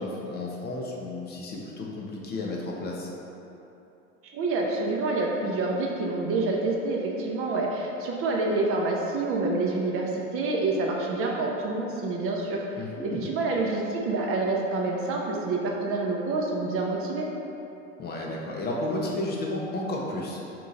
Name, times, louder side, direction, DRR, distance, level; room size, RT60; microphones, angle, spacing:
voice 1, 0.0-3.1 12.8-13.3 18.0-20.4, left 2 dB, 25° left, -3 dB, 0.5 m, -32 dB
voice 2, 4.2-12.6 13.0-17.3, right 3 dB, 35° right, -1 dB, 0.5 m, -27 dB
3.7 x 2.8 x 3.7 m, 2.9 s
hypercardioid pair, 85°, 40 cm